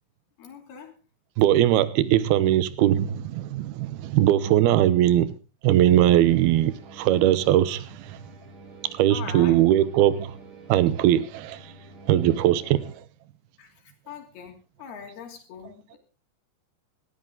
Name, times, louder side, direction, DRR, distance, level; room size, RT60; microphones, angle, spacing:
voice 1, 0.4-1.0 9.1-9.6 13.6-16.0, left 7 dB, 85° left, 4.8 m, -42 dB
voice 2, 1.4-5.3 5.6-8.2 9.0-10.3 10.7-11.6 12.1-13.0, right 12 dB, 85° right, 2.8 m, -20 dB
sound 1, 6.2-12.9, right 3 dB, 55° right, 4.2 m, -48 dB
18.0 x 13.5 x 3.8 m
omnidirectional pair, 4.4 m